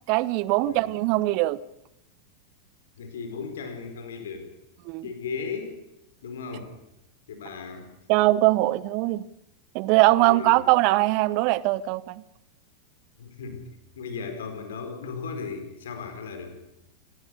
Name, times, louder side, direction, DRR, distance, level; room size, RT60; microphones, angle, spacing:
voice 1, 0.1-1.6 4.9-5.0 8.1-9.2 9.7-12.2, right 19 dB, 45° right, 0.7 m, -21 dB
voice 2, 0.6-1.0 3.0-4.5 5.0-5.8 6.2-6.7 7.3-7.9 10.2-10.6 13.2-13.7 13.9-16.6, left 5 dB, 60° left, 4.8 m, -36 dB
25.5 x 19.5 x 6.8 m
figure-of-eight pair, 90°, 0 cm